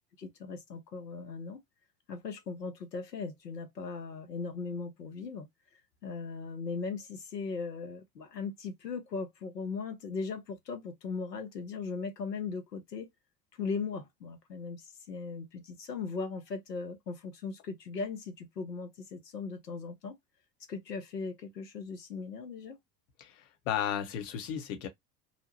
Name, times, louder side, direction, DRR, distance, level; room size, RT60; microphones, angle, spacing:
voice 1, 0.2-1.6 2.1-5.5 6.0-13.1 13.6-20.2 20.7-22.8, left 4 dB, 85° left, 0.8 m, -38 dB
voice 2, 23.2-24.9, left 9 dB, 55° left, 0.8 m, -34 dB
2.7 x 2.1 x 2.8 m
figure-of-eight pair, 75°, 48 cm